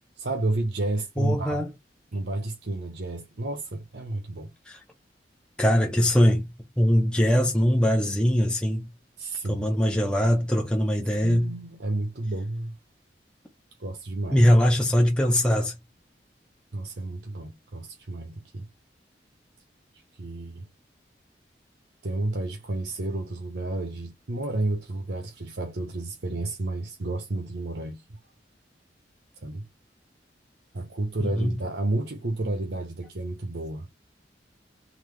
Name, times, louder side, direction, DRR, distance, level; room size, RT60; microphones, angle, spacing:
voice 1, 0.2-1.6 2.1-4.5 9.2-9.7 11.2-12.8 13.8-14.5 16.7-18.7 19.9-20.7 22.0-28.2 29.4-29.6 30.7-33.9, right 2 dB, 75° right, 0.9 m, -31 dB
voice 2, 1.2-1.7 4.7-4.8 5.6-6.5 6.8-8.9 9.5-11.6 14.3-15.8 31.2-31.6, equal, 5° left, 0.6 m, -22 dB
3.9 x 2.7 x 3.3 m
head